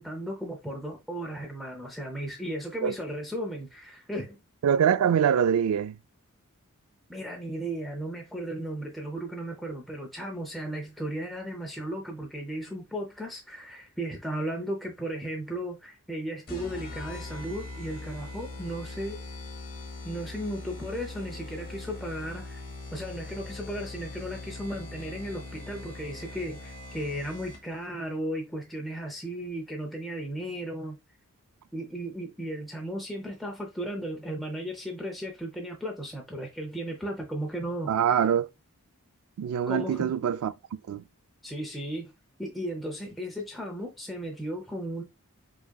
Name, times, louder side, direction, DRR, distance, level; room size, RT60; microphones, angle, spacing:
voice 1, 0.0-4.4 7.1-19.2 20.0-22.6 22.9-31.0 31.7-37.9 39.7-40.1 41.4-42.1 42.4-45.0, right 1 dB, ahead, 0.5 m, -35 dB
voice 2, 4.6-6.0 37.9-38.5 39.4-41.0, right 8 dB, 80° right, 0.3 m, -24 dB
sound 1, 16.5-27.9, left 2 dB, 40° left, 1.2 m, -41 dB
4.8 x 2.8 x 2.2 m
head